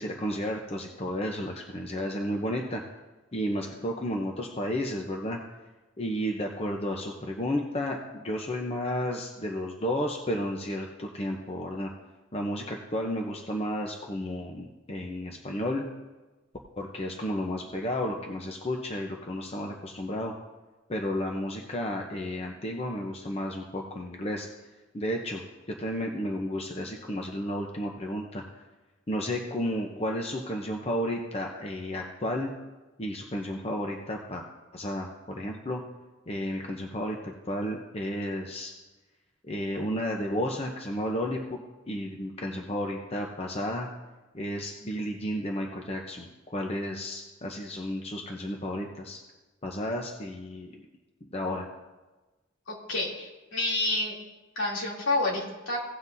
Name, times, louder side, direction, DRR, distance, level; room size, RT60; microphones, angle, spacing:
voice 1, 0.0-2.8 3.3-5.4 6.0-11.9 12.3-15.8 16.8-20.3 20.9-24.5 24.9-25.4 25.8-28.4 29.1-32.5 33.0-34.4 34.7-35.8 36.3-38.7 39.5-41.4 41.9-43.9 44.3-49.2 49.6-50.7 51.2-51.7, equal, 30° left, 1 dB, 0.8 m, -32 dB
voice 2, 52.7-54.1 54.6-55.8, left 2 dB, 75° left, -4 dB, 2.9 m, -29 dB
17.0 x 7.8 x 2.7 m, 1.2 s
head